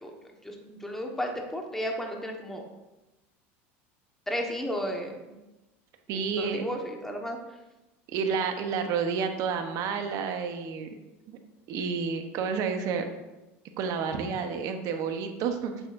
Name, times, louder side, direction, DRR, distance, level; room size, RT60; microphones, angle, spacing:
voice 1, 0.4-2.6 4.3-5.2 6.1-7.4, equal, 5° left, 1 dB, 1.3 m, -33 dB
voice 2, 6.1-6.6 8.1-10.9 11.3-11.4 11.7-13.1 13.8-15.8, right 6 dB, 55° right, 6 dB, 0.9 m, -30 dB
7.9 x 6.4 x 2.6 m, 1.0 s
hypercardioid pair, 95°, 7 cm